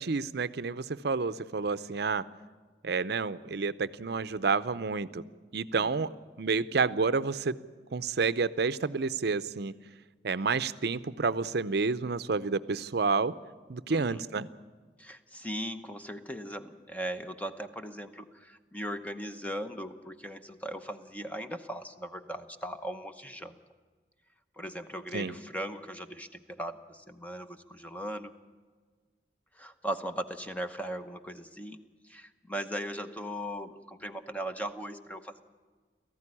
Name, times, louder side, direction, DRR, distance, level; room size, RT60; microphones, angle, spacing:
voice 1, 0.0-2.2 2.8-5.2 5.5-6.1 6.4-7.5 7.9-9.7 10.2-13.3 13.7-14.5 25.1-25.3, right 4 dB, 65° right, 15 dB, 0.6 m, -29 dB
voice 2, 13.9-14.4 15.0-23.6 24.6-28.3 29.5-35.4, equal, 10° left, 7 dB, 0.9 m, -38 dB
18.5 x 14.5 x 9.8 m, 1.4 s
head